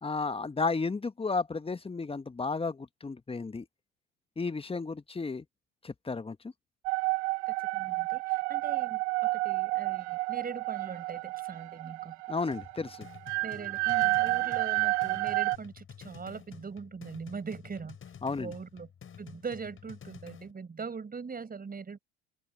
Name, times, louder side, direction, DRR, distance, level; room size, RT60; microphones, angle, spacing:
voice 1, 0.0-3.6 4.4-5.4 5.8-6.4 12.3-13.1 18.2-18.5, left 4 dB, 15° left, 1.6 m, -33 dB
sound 1, 6.9-15.6, right 26 dB, 60° right, 0.9 m, -30 dB
voice 2, 7.5-12.2 13.4-18.0 18.4-18.9 19.2-22.0, right 5 dB, 20° right, 6.8 m, -41 dB
sound 2, 12.5-20.5, left 7 dB, 30° left, 6.2 m, -50 dB
open air
figure-of-eight pair, 70°, 39 cm